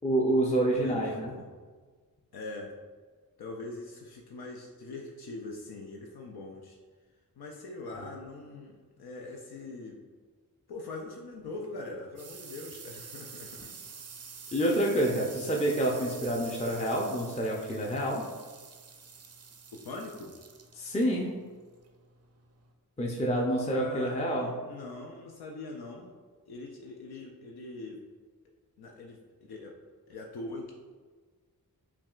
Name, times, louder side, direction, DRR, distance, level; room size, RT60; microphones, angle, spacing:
voice 1, 0.0-1.3 7.9-8.0 14.5-18.2 20.7-21.3 23.0-24.5, right 1 dB, 20° left, -2 dB, 0.5 m, -28 dB
voice 2, 0.7-1.4 2.3-2.7 3.4-6.8 7.4-10.0 10.7-13.8 19.8-20.3 23.7-26.2 26.5-28.0 28.8-29.2 29.5-29.7 30.1-30.7, left 2 dB, 80° left, 0 dB, 0.5 m, -42 dB
sound 1, 11.4-22.7, right 5 dB, 45° right, 0.5 m, -48 dB
5.8 x 2.3 x 2.4 m, 1.4 s
cardioid pair, 50°, 37 cm